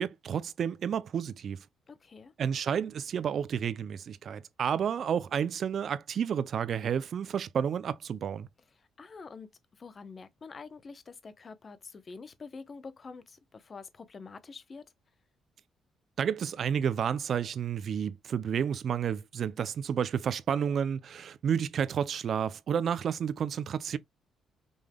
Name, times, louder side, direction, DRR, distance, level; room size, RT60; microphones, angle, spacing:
voice 1, 0.0-1.6 2.4-8.5 16.2-24.0, right 8 dB, 60° right, 0.4 m, -31 dB
voice 2, 1.9-2.3 8.8-14.8, left 4 dB, 40° left, 0.8 m, -47 dB
5.3 x 3.3 x 2.2 m
cardioid pair, 90°, 0 cm